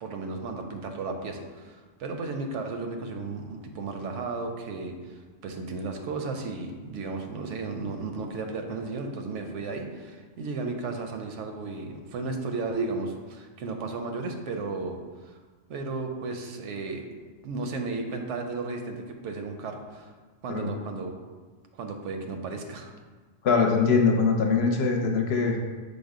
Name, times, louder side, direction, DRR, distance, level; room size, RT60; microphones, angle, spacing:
voice 1, 0.0-15.4 15.7-17.1 17.4-20.1 20.4-21.1 21.8-22.9, right 3 dB, 80° right, 4 dB, 0.9 m, -34 dB
voice 2, 23.4-25.6, left 5 dB, 65° left, 2 dB, 0.7 m, -22 dB
5.2 x 2.0 x 4.8 m, 1.4 s
omnidirectional pair, 1.2 m